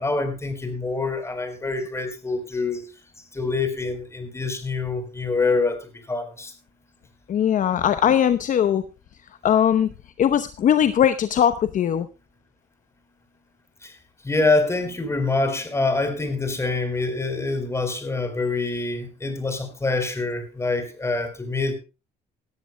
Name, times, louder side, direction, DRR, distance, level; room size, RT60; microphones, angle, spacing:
voice 1, 0.0-2.8 3.3-6.5 13.8-13.9 14.2-21.7, left 3 dB, 15° left, 9 dB, 4.1 m, -25 dB
voice 2, 7.3-8.8 9.4-9.9 10.2-12.1, left 9 dB, 50° left, 11 dB, 0.9 m, -20 dB
19.0 x 14.0 x 2.2 m, 0.29 s
cardioid pair, 110°, 17 cm